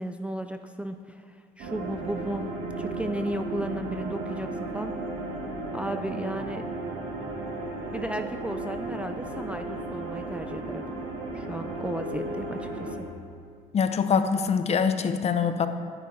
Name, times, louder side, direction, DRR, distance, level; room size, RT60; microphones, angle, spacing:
voice 1, 0.0-4.9 5.7-6.7 7.9-10.8 11.3-13.1, right 1 dB, 5° right, 7 dB, 0.4 m, -34 dB
sound 1, 1.6-12.9, right 2 dB, 90° right, 2.1 m, -34 dB
voice 2, 13.7-15.7, left 6 dB, 40° left, 9 dB, 0.7 m, -24 dB
11.0 x 10.0 x 4.2 m, 2.2 s
cardioid pair, 110°, 17 cm